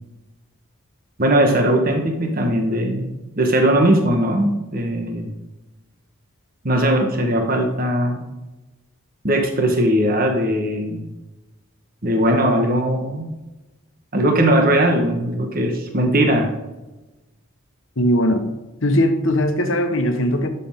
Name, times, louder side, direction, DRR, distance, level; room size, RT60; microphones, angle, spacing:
voice 1, 1.2-3.1 3.4-5.3 6.6-8.2 9.2-11.1 12.0-13.3 14.1-16.5, right 1 dB, 40° right, 3 dB, 1.3 m, -19 dB
voice 2, 18.0-18.5 18.8-20.5, equal, 60° left, 6 dB, 1.2 m, -19 dB
11.5 x 6.9 x 3.7 m, 1.1 s
head